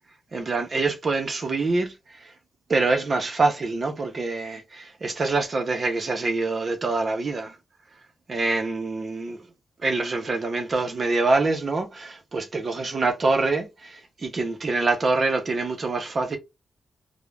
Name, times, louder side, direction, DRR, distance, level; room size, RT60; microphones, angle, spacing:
voice 1, 0.3-2.3 2.7-7.6 8.3-9.4 9.8-16.4, right 3 dB, 45° right, 0.7 m, -25 dB
2.4 x 2.1 x 3.2 m
cardioid pair, 95°, 0 cm